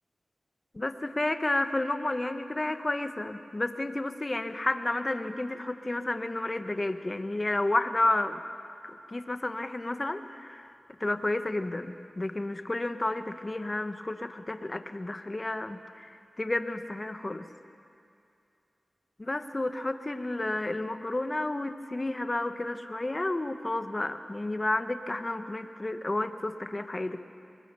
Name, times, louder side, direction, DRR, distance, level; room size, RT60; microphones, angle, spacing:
voice 1, 0.7-8.4 9.1-10.7 11.0-17.4 19.2-27.2, left 2 dB, 35° left, 9 dB, 1.3 m, -31 dB
24.5 x 20.5 x 7.0 m, 2.5 s
cardioid pair, 50°, 0 cm